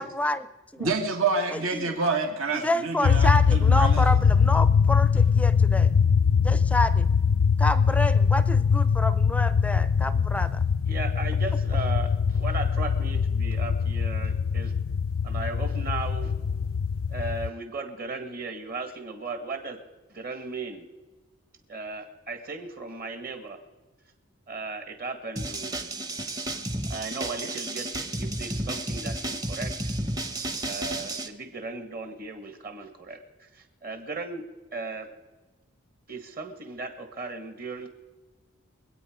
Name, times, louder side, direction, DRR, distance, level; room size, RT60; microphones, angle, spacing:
voice 1, 0.0-0.9 1.5-2.0 2.5-5.9 6.4-7.1 7.6-10.6, left 1 dB, 5° left, 13 dB, 0.5 m, -29 dB
voice 2, 0.8-4.1, right 4 dB, 75° right, 2 dB, 2.1 m, -28 dB
sound 1, 3.0-17.5, left 6 dB, 75° left, 0.4 m, -22 dB
voice 3, 10.8-14.7 15.2-16.3 17.1-19.8 20.1-20.8 21.7-23.6 24.5-25.7 26.9-29.9 30.6-34.4 34.7-35.1 36.1-37.9, right 3 dB, 45° right, 6 dB, 1.7 m, -36 dB
sound 2, 25.4-31.3, right 1 dB, 15° right, 0.8 m, -32 dB
24.0 x 8.6 x 5.1 m, 1.2 s
head